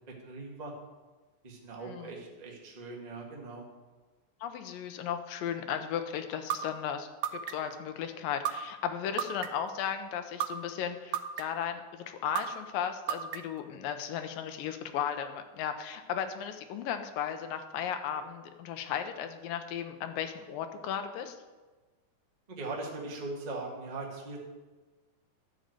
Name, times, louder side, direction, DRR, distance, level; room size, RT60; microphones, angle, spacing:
voice 1, 0.2-0.7 1.4-3.7 22.5-24.4, right 3 dB, 30° right, -2 dB, 0.8 m, -40 dB
voice 2, 1.9-2.2 4.4-21.4, left 8 dB, 85° left, 8 dB, 2.5 m, -35 dB
sound 1, 6.5-6.6 7.2-7.7 8.4-8.5 9.2-9.7 10.4-10.5 11.1-11.6 12.3-12.4 13.1-13.6, right 10 dB, 80° right, 1.6 m, -31 dB
11.5 x 5.3 x 7.6 m, 1.3 s
omnidirectional pair, 4.0 m